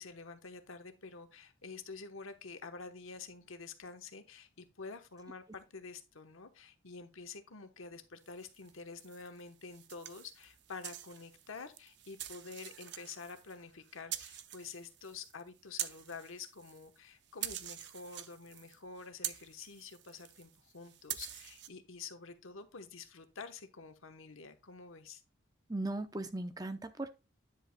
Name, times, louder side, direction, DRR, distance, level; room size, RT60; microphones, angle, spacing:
voice 1, 0.0-25.2, left 4 dB, 90° left, 1.1 m, -48 dB
sound 1, 8.3-17.0 17.3-21.7, right 12 dB, 60° right, 0.6 m, -46 dB
voice 2, 25.7-27.1, right 2 dB, 20° right, 0.6 m, -37 dB
10.0 x 7.7 x 2.3 m
head